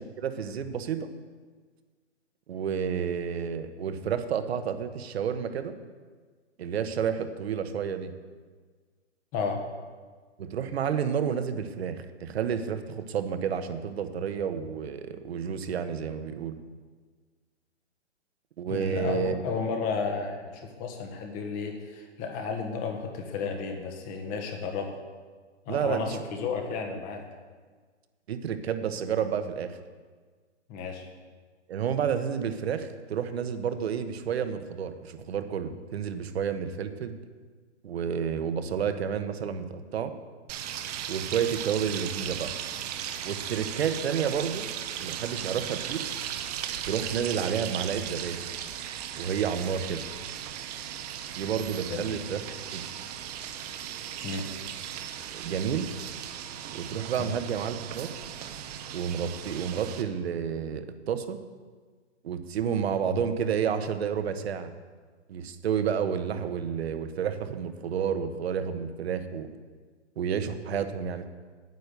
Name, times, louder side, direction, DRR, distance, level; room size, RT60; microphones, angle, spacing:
voice 1, 0.2-1.1 2.5-5.7 6.6-8.1 10.4-16.6 18.6-19.4 25.7-26.2 28.3-29.7 31.7-37.1 37.8-40.1 41.1-42.5 43.2-44.7 45.0-46.0 46.9-48.4 49.2-50.0 51.4-52.8 55.3-55.9 56.7-58.1 58.9-61.4 62.2-64.7 65.3-69.5 70.2-71.2, right 7 dB, 60° right, 9 dB, 1.2 m, -30 dB
voice 2, 9.3-9.6 18.7-24.9 25.6-27.3 30.7-31.1 51.9-52.2 54.2-54.5 57.2-57.3, left 5 dB, 25° left, 4 dB, 1.6 m, -33 dB
sound 1, 40.5-60.0, right 10 dB, 35° right, 0.9 m, -37 dB
9.5 x 9.3 x 6.8 m, 1.5 s
hypercardioid pair, 145°, 35 cm